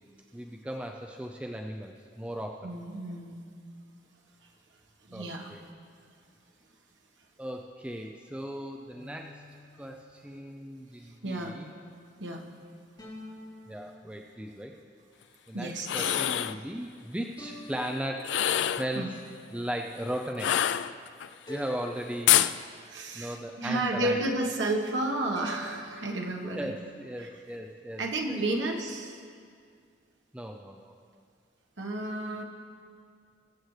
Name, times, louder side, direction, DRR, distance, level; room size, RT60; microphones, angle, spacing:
voice 1, 0.3-2.7 5.1-5.2 5.5-5.6 7.4-9.4 9.8-11.7 13.7-14.7 15.5-18.3 18.6-19.2 19.5-20.8 21.5-22.4 23.1-24.2 26.0-26.1 26.4-28.0 28.3-28.6 30.3-30.9, equal, 5° right, 2 dB, 0.4 m, -37 dB
voice 2, 2.6-3.4 5.0-5.5 11.2-11.6 12.2-12.5 15.5-16.2 18.9-19.1 22.8-26.7 27.2-27.3 28.0-29.2 31.8-32.4, right 2 dB, 90° right, 2 dB, 1.3 m, -32 dB
sound 1, 8.9-10.6 13.0-14.7 17.4-18.9 21.5-23.1 25.3-26.2, equal, 25° left, 3.5 m, -48 dB
sound 2, 15.8-16.6 18.2-18.9 20.4-21.3 22.3-22.6, left 11 dB, 80° left, 0.3 m, -25 dB
22.5 x 7.8 x 3.2 m, 2.2 s
head